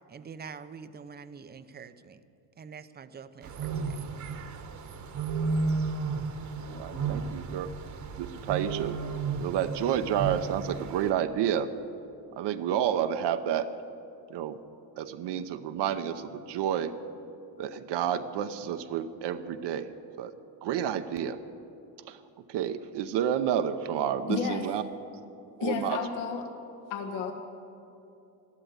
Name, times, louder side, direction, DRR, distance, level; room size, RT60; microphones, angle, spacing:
voice 1, 0.1-2.2 2.6-4.1, right 6 dB, 20° right, 12 dB, 0.6 m, -45 dB
sound 1, 3.4-11.1, right 4 dB, 40° right, 1.2 m, -33 dB
voice 2, 6.7-7.7 8.2-9.0 9.4-11.7 12.4-13.7 14.3-14.6 15.0-16.9 17.6-20.3 20.6-21.4 22.1-22.2 22.5-24.8 25.6-26.0, right 9 dB, 65° right, 9 dB, 0.8 m, -30 dB
voice 3, 24.3-24.6 25.6-26.5 26.9-27.3, left 6 dB, 75° left, 4 dB, 1.7 m, -31 dB
13.0 x 12.5 x 8.0 m, 2.8 s
cardioid pair, 105°, 45 cm